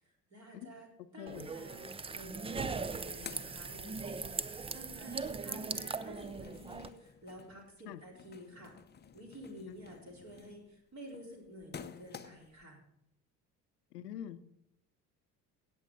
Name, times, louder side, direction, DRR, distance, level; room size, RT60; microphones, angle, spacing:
voice 1, 0.0-0.9 1.1-8.7 9.1-12.8, equal, 35° right, -1 dB, 4.0 m, -51 dB
voice 2, 1.2-1.5 7.9-8.0 13.9-14.4, left 10 dB, 80° left, 13 dB, 0.7 m, -44 dB
sound 1, 1.3-6.9, right 4 dB, 15° right, 0.5 m, -39 dB
sound 2, 2.8-4.4 4.7-12.6, left 7 dB, 20° left, 0.8 m, -53 dB
17.0 x 7.3 x 3.8 m, 0.83 s
figure-of-eight pair, 60°, 48 cm